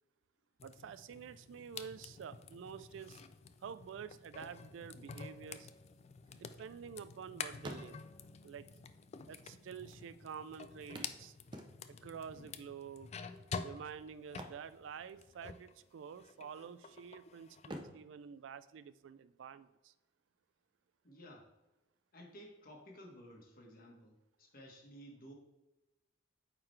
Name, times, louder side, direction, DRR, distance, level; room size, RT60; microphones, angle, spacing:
sound 1, 0.6-15.7 16.1-17.8, left 5 dB, 35° left, 0.3 m, -49 dB
voice 1, 0.6-3.2 3.6-5.7 6.3-8.0 8.4-8.7 9.3-11.3 12.0-13.1 13.6-19.9, right 7 dB, 80° right, 14 dB, 0.3 m, -49 dB
sound 2, 6.0-7.2 7.5-8.4 9.3-9.4 9.6-9.7 10.9-12.1 14.2-15.5 15.8-16.0 16.5-17.1 17.6-19.4 21.3-21.4 21.9-22.0, right 1 dB, 25° right, 0.6 m, -51 dB
voice 2, 21.0-21.5 22.1-25.3, equal, 50° left, 0 dB, 1.3 m, -55 dB
8.7 x 3.9 x 3.2 m, 1.0 s
head